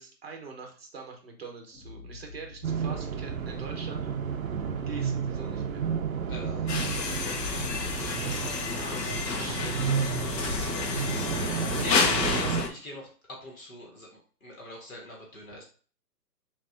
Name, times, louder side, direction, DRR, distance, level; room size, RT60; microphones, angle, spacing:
voice 1, 0.0-4.1 4.9-5.8 7.9-11.4, right 4 dB, 40° right, 2 dB, 0.9 m, -44 dB
sound 1, 1.7-7.8, left 3 dB, 20° left, 1.2 m, -52 dB
sound 2, 2.6-12.7, right 7 dB, 55° right, 0.5 m, -32 dB
voice 2, 6.3-7.2 11.7-15.6, left 1 dB, 55° left, 0 dB, 1.2 m, -43 dB
sound 3, 6.7-12.7, left 5 dB, 80° left, 0.9 m, -30 dB
5.6 x 2.6 x 2.5 m, 0.41 s
hypercardioid pair, 175°, 49 cm